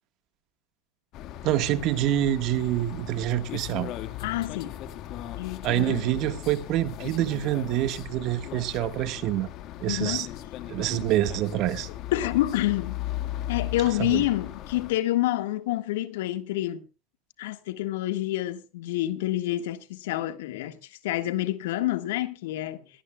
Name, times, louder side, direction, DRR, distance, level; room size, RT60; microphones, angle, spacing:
sound 1, 1.1-14.9, left 12 dB, 55° left, 1.8 m, -37 dB
voice 1, 1.4-3.9 5.6-9.5 9.8-10.3 10.7-11.9 14.0-14.2, right 13 dB, 55° right, 1.5 m, -26 dB
voice 2, 4.2-4.8 5.4-6.1 9.9-10.3 10.9-11.0 12.1-13.0 13.5-16.8 17.4-20.8 21.0-22.8, left 15 dB, 80° left, 1.7 m, -28 dB
18.0 x 17.5 x 2.3 m
supercardioid pair, 105°, 0 cm